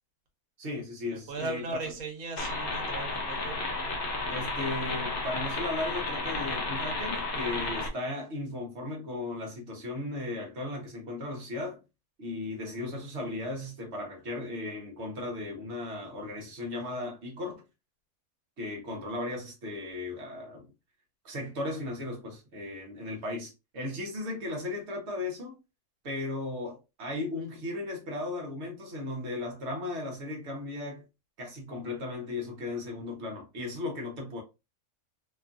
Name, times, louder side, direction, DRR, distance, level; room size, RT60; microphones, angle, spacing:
voice 1, 0.6-1.6 4.3-11.8 12.2-17.6 18.6-20.7 21.2-25.6 26.0-31.0 31.4-34.4, left 2 dB, 50° right, 1.1 m, -36 dB
voice 2, 1.3-3.6, right 3 dB, 75° right, 1.3 m, -37 dB
sound 1, 2.4-7.9, left 2 dB, 55° left, 0.6 m, -32 dB
3.0 x 2.4 x 2.4 m
omnidirectional pair, 1.5 m